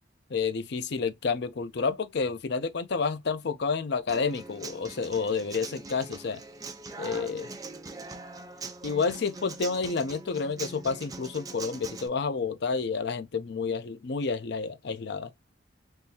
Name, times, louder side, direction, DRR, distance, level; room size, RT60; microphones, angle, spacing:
voice 1, 0.3-6.4 7.0-7.5 8.8-15.3, left 5 dB, 60° left, 0.5 m, -30 dB
Human voice / Acoustic guitar, 4.1-12.1, right 3 dB, 20° right, 0.5 m, -42 dB
3.6 x 2.7 x 2.7 m
head